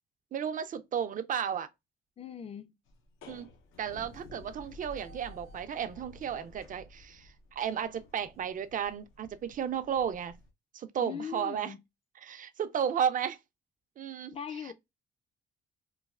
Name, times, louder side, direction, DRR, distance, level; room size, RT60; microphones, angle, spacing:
voice 1, 0.3-1.7 3.3-3.5 3.8-10.3 10.7-11.7 12.2-13.4 14.0-14.3, right 8 dB, 40° right, 0.4 m, -33 dB
voice 2, 2.2-2.8 11.0-11.8 14.3-14.7, left 7 dB, 30° left, 0.4 m, -40 dB
sound 1, 2.9-10.5, left 2 dB, 80° left, 0.6 m, -53 dB
3.1 x 2.3 x 2.3 m
cardioid pair, 90°, 20 cm